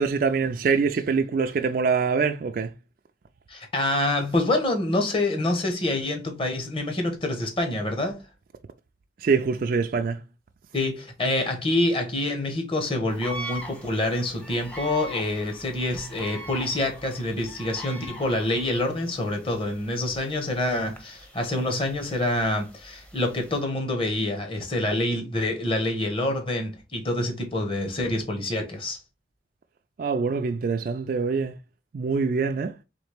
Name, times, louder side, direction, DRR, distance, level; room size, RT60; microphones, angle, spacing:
voice 1, 0.0-2.7 9.2-10.2 30.0-31.6 31.9-32.7, right 5 dB, 50° right, 0.3 m, -24 dB
voice 2, 3.5-8.2 10.7-29.0, left 1 dB, 30° left, 1.0 m, -26 dB
sound 1, 13.1-23.6, left 1 dB, 5° left, 0.7 m, -42 dB
4.0 x 3.3 x 3.3 m
head